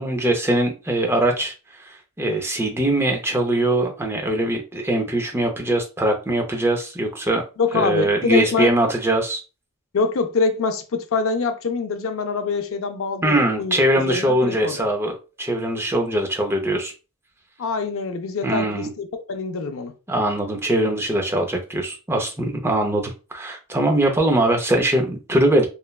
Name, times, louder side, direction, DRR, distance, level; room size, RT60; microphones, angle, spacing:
voice 1, 0.0-7.4 7.7-9.4 13.2-16.9 18.4-18.9 20.1-25.7, right 1 dB, 10° right, 0.5 m, -22 dB
voice 2, 7.6-8.7 9.9-14.9 17.6-19.9, left 4 dB, 65° left, 0.4 m, -25 dB
3.1 x 2.2 x 2.3 m
head